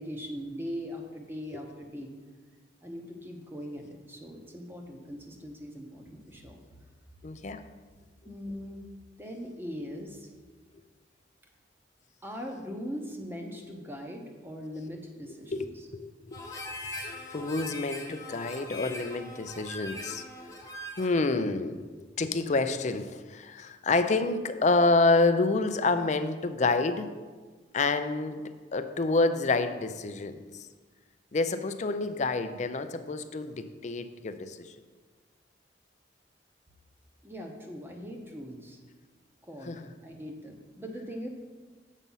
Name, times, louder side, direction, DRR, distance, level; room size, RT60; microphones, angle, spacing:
voice 1, 0.0-2.1 2.8-6.6 8.2-8.8 9.2-10.3 12.2-15.9 37.2-38.8 39.4-39.7 40.0-41.3, equal, 10° right, 2 dB, 0.9 m, -40 dB
voice 2, 7.2-7.6 15.5-16.4 16.8-16.9 17.3-20.2 20.6-20.7 21.0-21.9 22.2-27.1 27.7-28.4 28.7-30.4 31.3-34.7 39.7-39.9, left 3 dB, 40° left, 10 dB, 0.5 m, -28 dB
Harmonica, 16.3-21.2, left 1 dB, 20° left, 1.0 m, -41 dB
7.3 x 5.4 x 5.5 m, 1.4 s
head